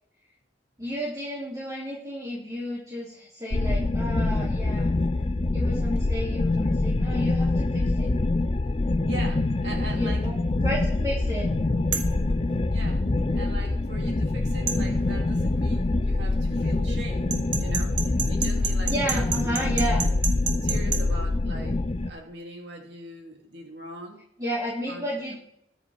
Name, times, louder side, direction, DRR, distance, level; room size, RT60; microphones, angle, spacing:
voice 1, 0.8-4.9 5.5-8.1 9.9-10.4 10.6-11.5 18.9-20.0 24.4-25.4, equal, 20° right, -7 dB, 2.7 m, -32 dB
sound 1, 3.5-22.1, left 2 dB, 30° left, 0.5 m, -25 dB
voice 2, 9.1-10.3 12.7-13.1 13.3-19.8 20.6-21.8 22.1-24.2 24.9-25.0, right 2 dB, 70° right, 0 dB, 2.7 m, -41 dB
sound 2, 11.9-12.2 14.7-14.8 17.3-21.0, right 7 dB, 85° right, 1.7 m, -29 dB
21.5 x 7.2 x 3.5 m, 0.73 s
head